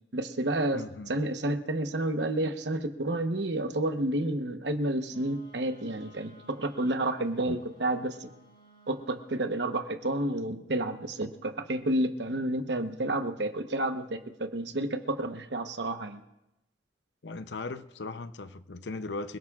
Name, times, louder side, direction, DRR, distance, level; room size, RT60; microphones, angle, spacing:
voice 1, 0.1-8.3 8.9-16.2, right 1 dB, 70° right, 1.1 m, -30 dB
voice 2, 0.7-1.1 7.5-7.6 17.2-19.4, left 3 dB, 75° left, 0.7 m, -38 dB
Wind instrument woodwind instrument, 5.1-9.5, left 1 dB, 30° left, 4.3 m, -57 dB
26.5 x 18.0 x 2.5 m
head